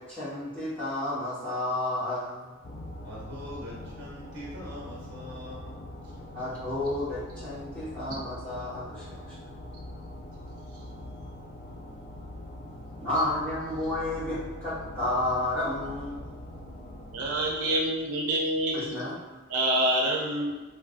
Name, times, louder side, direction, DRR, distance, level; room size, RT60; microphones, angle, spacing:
voice 1, 0.0-2.5 6.3-9.2 13.0-16.3 18.7-19.4, left 1 dB, 5° left, -13 dB, 1.2 m, -31 dB
sound 1, 2.6-17.8, left 1 dB, 45° left, 0.3 m, -43 dB
voice 2, 3.0-5.9, equal, 50° right, -6 dB, 0.9 m, -42 dB
voice 3, 17.1-19.0 19.5-20.6, right 1 dB, 85° right, -2 dB, 0.6 m, -27 dB
3.1 x 2.5 x 2.4 m, 1.2 s
head